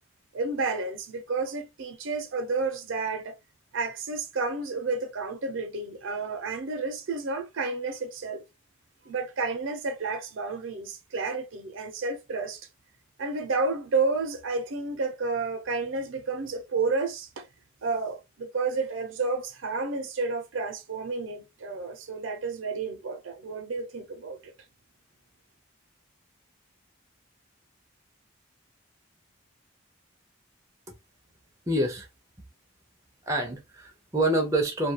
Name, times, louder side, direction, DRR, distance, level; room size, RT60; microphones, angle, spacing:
voice 1, 0.3-3.3 3.7-8.4 9.1-12.6 13.2-17.5 17.8-24.5, right 3 dB, 80° right, 0.6 m, -31 dB
voice 2, 31.7-32.1 33.3-34.9, right 1 dB, 15° right, 0.5 m, -26 dB
2.3 x 2.3 x 2.7 m
head